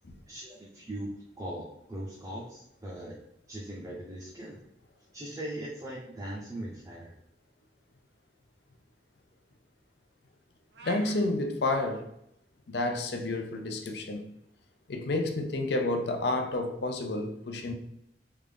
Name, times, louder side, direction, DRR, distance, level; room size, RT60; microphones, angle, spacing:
voice 1, 0.3-1.1 1.4-3.2 3.5-4.6 5.1-7.1, right 1 dB, 20° right, 0.5 m, -40 dB
sound 1, 10.7-11.2, right 3 dB, 75° right, 0.6 m, -45 dB
voice 2, 10.8-12.1 12.7-14.2 14.9-17.7, left 2 dB, 70° left, 0.5 m, -30 dB
3.3 x 2.5 x 3.5 m
head